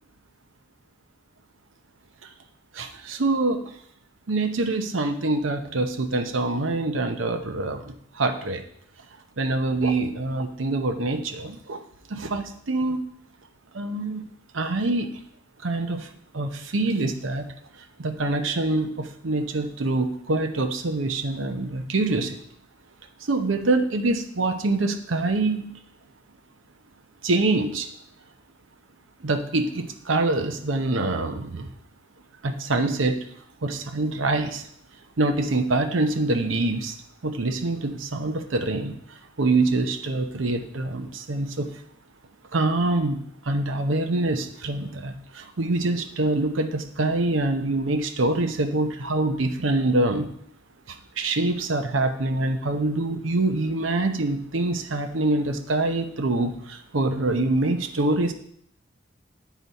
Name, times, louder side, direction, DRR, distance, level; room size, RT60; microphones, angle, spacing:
voice 1, 2.7-3.6 4.3-8.6 9.4-11.8 12.1-13.0 13.7-14.2 14.5-15.1 15.6-16.1 16.3-17.4 18.0-22.4 23.3-25.8 27.2-27.9 29.2-31.7 32.4-33.3 33.6-34.6 35.2-36.9 37.2-39.0 39.4-41.7 42.5-43.2 43.4-50.3 50.9-58.3, right 2 dB, 85° right, 6 dB, 0.8 m, -25 dB
9.4 x 4.0 x 4.1 m, 0.65 s
head